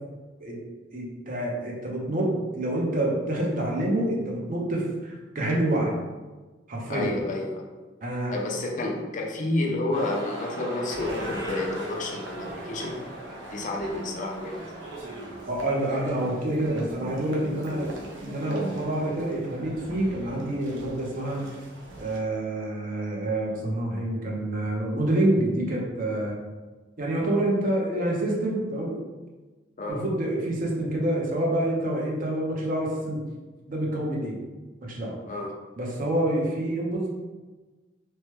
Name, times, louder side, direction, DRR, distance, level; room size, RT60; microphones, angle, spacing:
voice 1, 0.9-6.0 6.7-7.1 8.0-8.3 15.5-17.9 18.2-21.4 22.0-26.3 27.0-29.0 29.9-33.2 33.7-34.4 34.8-35.1 35.8-37.1, right 1 dB, 45° right, -2 dB, 0.7 m, -27 dB
voice 2, 6.9-7.7 8.3-13.0 13.5-14.6 29.8-30.0 35.3-35.5, left 2 dB, 45° left, 0 dB, 0.5 m, -30 dB
sound 1, 9.9-15.5, equal, 65° right, 1.2 m, -40 dB
sound 2, 10.9-22.2, right 2 dB, 80° right, 0.6 m, -40 dB
3.1 x 2.1 x 3.0 m, 1.3 s
head